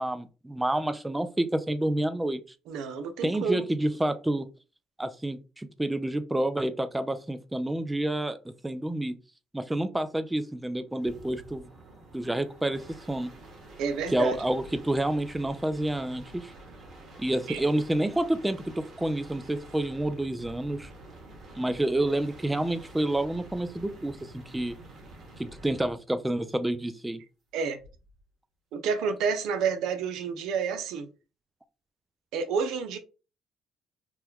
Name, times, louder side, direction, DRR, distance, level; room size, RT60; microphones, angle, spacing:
voice 1, 0.0-2.4 3.2-4.5 5.0-9.2 9.5-11.7 12.1-12.8 13.1-13.3 14.1-16.5 17.2-18.6 19.0-20.9 21.6-24.8 25.4-27.2, right 1 dB, 10° right, 0.4 m, -29 dB
voice 2, 2.7-3.6 13.8-14.4 17.5-17.6 27.5-27.8 28.7-31.1 32.3-33.0, right 6 dB, 80° right, 0.5 m, -29 dB
sound 1, 10.9-26.0 27.7-28.2, right 1 dB, 55° right, 1.4 m, -48 dB
3.0 x 2.2 x 3.4 m
supercardioid pair, 80°, 0 cm